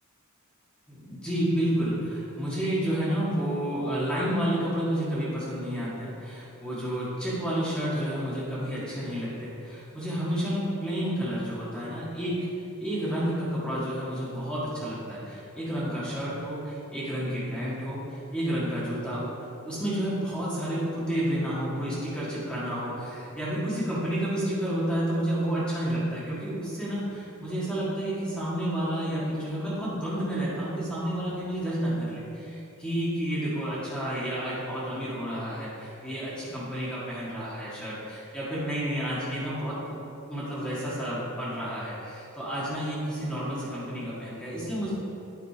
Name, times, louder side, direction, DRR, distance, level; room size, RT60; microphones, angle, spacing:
voice 1, 0.9-12.5 12.8-19.3 19.6-44.9, equal, 5° left, -9 dB, 1.6 m, -30 dB
9.5 x 4.4 x 4.9 m, 2.8 s
head